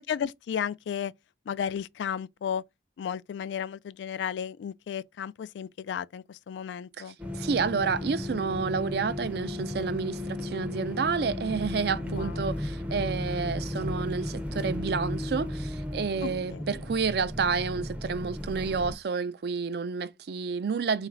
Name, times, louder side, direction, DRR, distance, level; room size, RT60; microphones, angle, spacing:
voice 1, 0.1-1.1 1.5-2.6 3.0-7.2 12.0-12.4 16.2-16.6, left 8 dB, 85° left, 0.3 m, -34 dB
sound 1, 7.2-19.0, left 1 dB, 10° right, 0.5 m, -34 dB
voice 2, 7.4-21.1, right 5 dB, 60° right, 0.4 m, -30 dB
4.0 x 2.4 x 4.4 m
head